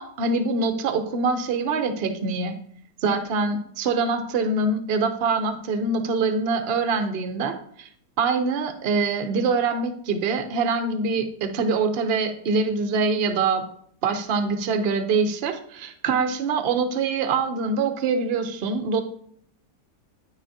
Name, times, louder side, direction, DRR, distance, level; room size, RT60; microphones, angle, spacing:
voice 1, 0.0-2.6 3.0-7.9 8.2-13.7 14.0-19.0, right 4 dB, 55° right, 6 dB, 0.7 m, -24 dB
9.3 x 6.1 x 2.7 m, 0.64 s
omnidirectional pair, 1.9 m